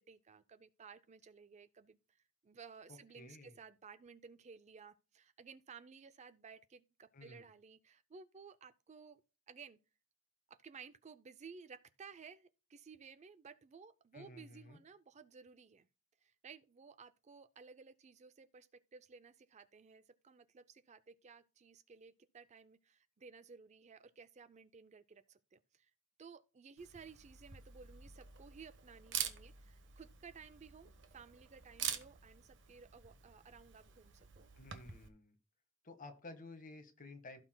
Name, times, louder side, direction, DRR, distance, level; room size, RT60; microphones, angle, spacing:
voice 1, 0.0-9.2 9.5-9.8 10.5-15.9 16.2-25.9 26.2-34.5, right 5 dB, 30° right, 0.4 m, -57 dB
voice 2, 2.9-3.6 7.1-7.4 14.1-14.8 34.5-35.3 35.8-37.4, left 2 dB, 40° left, 1.5 m, -53 dB
Camera, 26.8-35.1, right 9 dB, 55° right, 1.2 m, -46 dB
16.0 x 6.0 x 2.2 m
head